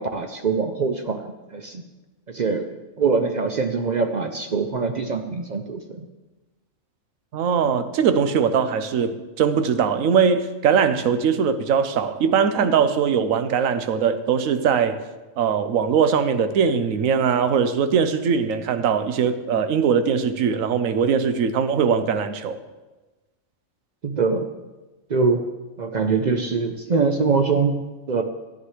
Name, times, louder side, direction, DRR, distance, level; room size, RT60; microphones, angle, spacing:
voice 1, 0.0-1.8 2.3-2.7 3.0-6.1 24.0-24.5 25.1-25.4 25.8-28.2, right 4 dB, 60° right, 5 dB, 0.5 m, -23 dB
voice 2, 7.3-15.0 15.4-22.6, right 6 dB, 80° right, 10 dB, 1.1 m, -21 dB
13.0 x 9.3 x 3.2 m, 1.2 s
omnidirectional pair, 1.4 m